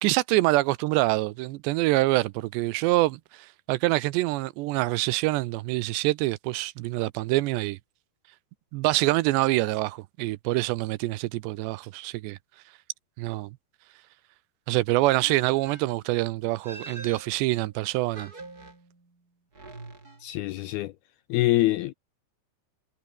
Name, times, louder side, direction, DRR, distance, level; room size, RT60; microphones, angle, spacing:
voice 1, 0.0-3.2 3.7-7.8 8.7-12.4 13.2-13.5 14.7-18.3, right 19 dB, 85° right, 2.8 m, -25 dB
sound 1, 15.2-16.0 16.6-17.7 18.1-19.1 19.5-20.6, right 3 dB, 20° right, 4.5 m, -45 dB
voice 2, 20.2-20.9 21.3-21.9, left 17 dB, 80° left, 2.3 m, -24 dB
omnidirectional pair, 5.2 m